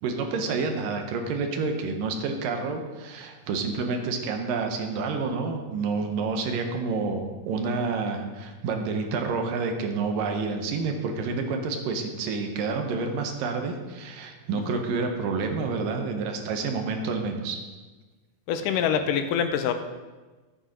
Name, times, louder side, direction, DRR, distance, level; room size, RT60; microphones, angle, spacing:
voice 1, 0.0-17.6 18.9-19.0, right 4 dB, 80° right, 4 dB, 2.8 m, -29 dB
voice 2, 18.5-19.7, left 8 dB, 80° left, 8 dB, 2.2 m, -25 dB
14.5 x 9.0 x 4.4 m, 1.3 s
omnidirectional pair, 4.0 m